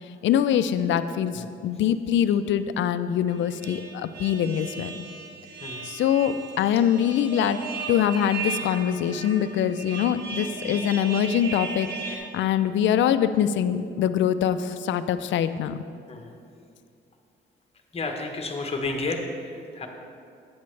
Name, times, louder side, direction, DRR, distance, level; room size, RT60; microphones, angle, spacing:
voice 1, 0.2-4.9 5.8-7.6 7.9-15.8, left 9 dB, 70° left, 12 dB, 0.4 m, -24 dB
sound 1, 3.3-12.2, right 4 dB, 55° right, 1.3 m, -36 dB
voice 2, 17.9-19.9, left 3 dB, 30° left, 3 dB, 1.1 m, -32 dB
8.7 x 8.2 x 3.2 m, 2.4 s
cardioid pair, 90°, 20 cm